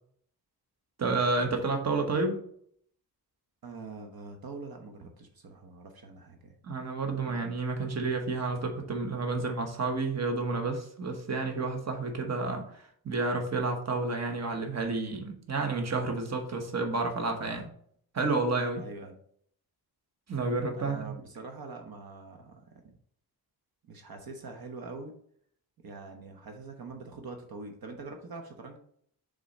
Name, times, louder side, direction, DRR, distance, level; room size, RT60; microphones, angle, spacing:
voice 1, 1.0-2.4 6.6-17.7 18.1-18.8 20.3-21.1, right 3 dB, 45° right, 3 dB, 1.1 m, -30 dB
voice 2, 3.6-6.6 7.2-7.4 9.3-9.4 18.8-19.2 20.8-22.9 23.8-25.1 25.8-28.8, right 3 dB, 65° right, 4 dB, 1.0 m, -44 dB
6.8 x 3.9 x 4.1 m, 0.63 s
wide cardioid pair, 150°, 38 cm